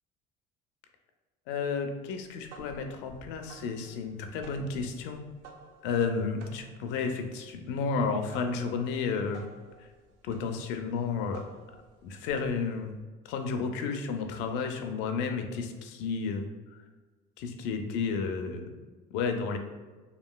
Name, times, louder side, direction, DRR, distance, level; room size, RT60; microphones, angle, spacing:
voice 1, 1.5-5.2 5.8-9.5 10.2-11.4 12.0-12.9 13.2-16.5 17.4-18.7 19.1-19.6, left 5 dB, 80° left, 5 dB, 0.4 m, -32 dB
sound 1, 2.4-13.0, right 4 dB, 80° right, 0.5 m, -51 dB
2.9 x 2.7 x 2.2 m, 1.3 s
cardioid pair, 140°, 18 cm